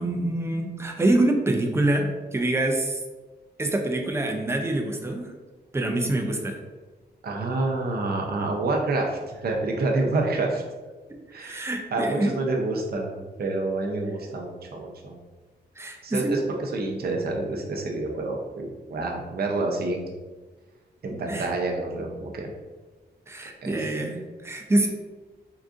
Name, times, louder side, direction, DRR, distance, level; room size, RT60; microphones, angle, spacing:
voice 1, 0.0-3.0 3.6-5.3 5.7-6.6 11.3-12.3 15.8-16.3 21.3-21.5 23.3-24.9, right 1 dB, 15° right, 3 dB, 0.4 m, -25 dB
voice 2, 7.2-10.6 11.3-15.2 16.0-20.1 21.0-22.5 23.6-23.8, right 2 dB, 60° right, 1 dB, 0.6 m, -28 dB
3.7 x 2.4 x 2.4 m, 1.3 s
wide cardioid pair, 105°, 18 cm